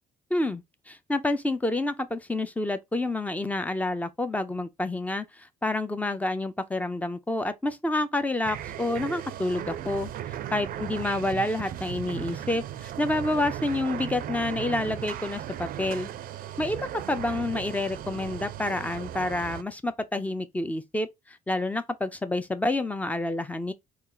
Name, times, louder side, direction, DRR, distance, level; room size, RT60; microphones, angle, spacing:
voice 1, 0.3-10.1 10.5-16.1 16.6-23.7, left 2 dB, 10° left, 0.6 m, -29 dB
sound 1, 8.4-19.6, right 11 dB, 55° right, 0.4 m, -36 dB
4.2 x 2.5 x 3.8 m
cardioid pair, 110°, 17 cm